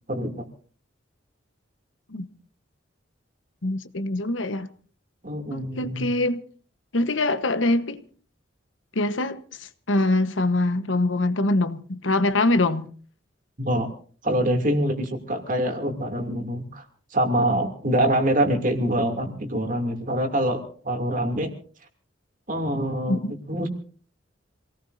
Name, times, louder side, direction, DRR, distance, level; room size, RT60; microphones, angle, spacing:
voice 1, 0.1-0.5 5.2-6.2 13.6-13.9 14.2-16.8 17.1-21.5 22.5-23.2 23.5-23.7, right 1 dB, 45° right, 2.8 m, -25 dB
voice 2, 3.6-4.7 5.5-6.4 6.9-8.1 8.9-12.9 23.1-23.3, left 2 dB, 90° left, 1.2 m, -24 dB
27.0 x 18.0 x 2.7 m
head